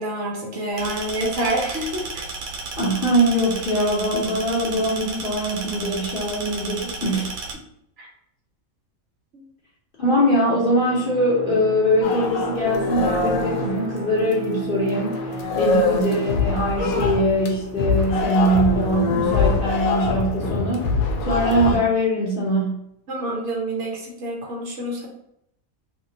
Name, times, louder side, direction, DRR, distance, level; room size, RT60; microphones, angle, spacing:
voice 1, 0.0-2.2 8.0-8.1 9.3-9.4 23.1-25.1, right 1 dB, 60° right, -2 dB, 1.0 m, -27 dB
sound 1, 0.8-7.5, right 3 dB, 80° right, 1.1 m, -33 dB
voice 2, 2.8-7.3 10.0-15.2 15.5-21.0 21.3-22.8, equal, 45° left, -5 dB, 0.8 m, -22 dB
Bowed string instrument, 10.1-17.9, right 2 dB, 15° right, 0.6 m, -34 dB
sound 2, 12.0-14.6 14.9-21.8, left 4 dB, 80° left, 1.0 m, -24 dB
3.0 x 2.8 x 2.7 m, 0.75 s
omnidirectional pair, 1.5 m